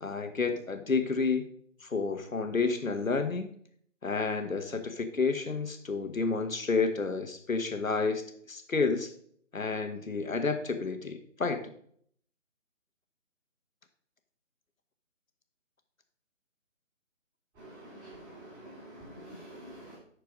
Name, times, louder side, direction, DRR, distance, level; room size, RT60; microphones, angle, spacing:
voice 1, 0.0-1.5 1.8-3.5 4.0-9.1 9.5-11.7, left 4 dB, 85° left, 7 dB, 1.5 m, -30 dB
voice 2, 17.6-20.0, right 1 dB, 10° right, -5 dB, 2.5 m, -48 dB
11.5 x 4.7 x 5.1 m, 0.63 s
figure-of-eight pair, 155°, 39 cm